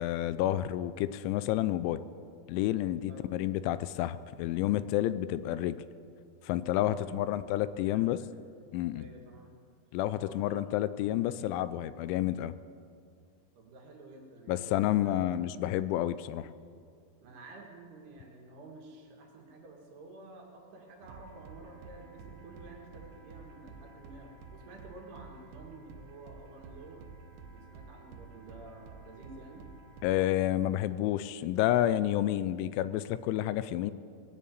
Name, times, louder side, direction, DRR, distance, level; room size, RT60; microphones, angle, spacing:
voice 1, 0.0-2.0 2.5-5.8 6.4-8.2 8.7-9.0 9.9-12.5 14.5-16.5 30.0-33.9, left 13 dB, 85° left, 15 dB, 2.9 m, -30 dB
voice 2, 6.7-7.5 7.9-8.3 8.9-9.5 10.1-10.7 13.6-15.4 17.2-27.1 27.5-29.6 33.3-33.5, right 2 dB, 65° right, 0 dB, 3.6 m, -50 dB
sound 1, 21.0-30.3, right 4 dB, 80° right, 3.2 m, -51 dB
19.5 x 6.6 x 9.2 m, 2.3 s
omnidirectional pair, 5.4 m